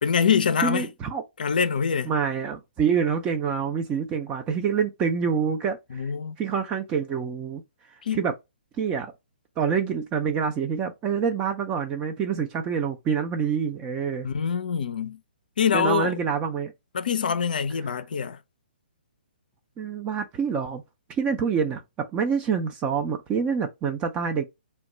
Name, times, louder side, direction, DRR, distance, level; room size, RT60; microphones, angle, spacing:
voice 1, 0.0-0.9 1.4-2.1 5.9-6.4 8.0-8.3 14.2-15.2 15.6-16.2 16.9-18.4, left 7 dB, 60° left, 0.4 m, -24 dB
voice 2, 0.6-1.2 2.1-6.0 6.4-7.6 8.1-8.3 8.8-9.1 9.6-14.3 15.7-16.7 19.8-20.8 21.2-24.4, right 6 dB, 20° right, 0.4 m, -26 dB
2.2 x 2.1 x 3.8 m
figure-of-eight pair, 130°, 5 cm